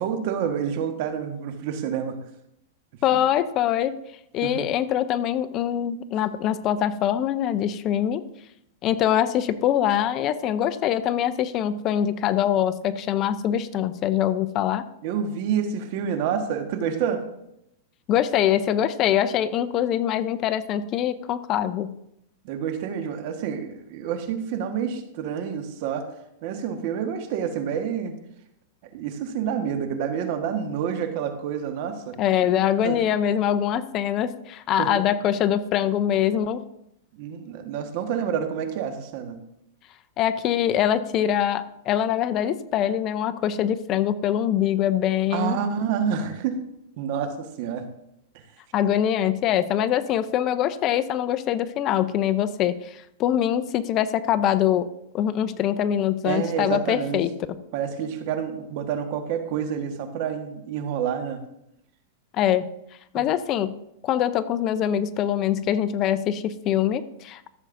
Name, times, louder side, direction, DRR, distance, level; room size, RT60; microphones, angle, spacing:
voice 1, 0.0-2.2 4.4-4.7 15.0-17.2 22.4-26.0 26.4-28.1 28.9-32.2 32.8-33.0 34.8-35.0 37.1-39.4 45.3-46.6 47.0-47.9 56.2-57.2 57.7-61.4 63.1-63.2, right 8 dB, 50° right, 6 dB, 1.3 m, -28 dB
voice 2, 3.0-3.9 4.3-8.2 8.8-14.9 18.1-21.9 32.2-36.6 40.2-45.6 48.7-54.9 55.1-57.3 62.3-62.6 63.1-63.8 64.0-67.4, left 10 dB, 35° left, 13 dB, 0.5 m, -23 dB
14.5 x 7.6 x 2.6 m, 0.79 s
supercardioid pair, 140°, 0 cm